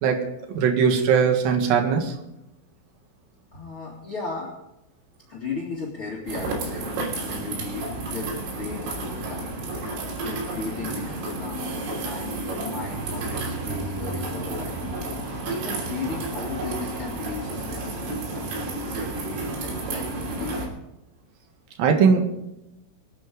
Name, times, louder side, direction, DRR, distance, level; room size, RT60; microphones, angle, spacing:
voice 1, 0.0-2.1 21.8-22.2, right 6 dB, 60° right, 3 dB, 2.8 m, -20 dB
voice 2, 3.5-4.5 5.3-9.9 10.2-11.7 12.0-14.8 15.1-18.0 18.2-20.7, left 3 dB, 40° left, -4 dB, 2.0 m, -36 dB
sound 1, 6.3-20.7, right 2 dB, 75° right, 5.5 m, -31 dB
24.5 x 9.2 x 3.8 m, 0.90 s
omnidirectional pair, 5.7 m